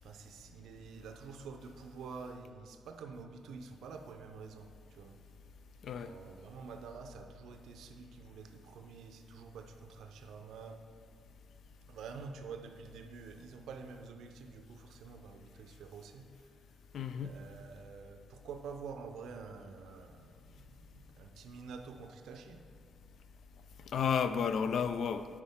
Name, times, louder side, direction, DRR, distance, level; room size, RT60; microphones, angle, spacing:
voice 1, 0.0-5.2 6.0-10.9 11.9-16.6 17.2-22.6, right 5 dB, 80° right, 6 dB, 0.5 m, -48 dB
voice 2, 16.9-17.3 23.9-25.3, left 7 dB, 55° left, 11 dB, 0.3 m, -32 dB
9.5 x 4.8 x 3.5 m, 2.1 s
cardioid pair, 160°, 0 cm